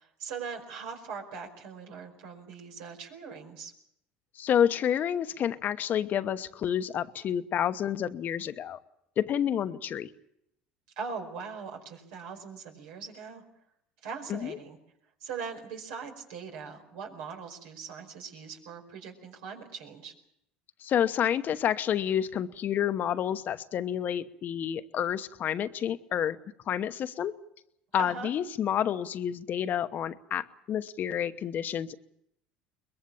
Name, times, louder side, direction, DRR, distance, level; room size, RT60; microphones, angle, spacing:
voice 1, 0.0-3.7 11.0-13.4 14.0-14.8 15.2-20.1 28.0-28.3, right 5 dB, 80° right, 5.0 m, -41 dB
voice 2, 4.4-8.8 9.2-10.1 14.3-14.6 20.8-26.4 26.7-27.4 27.9-31.9, left 9 dB, 50° left, 1.0 m, -29 dB
22.5 x 21.5 x 7.2 m
supercardioid pair, 95°, 4 cm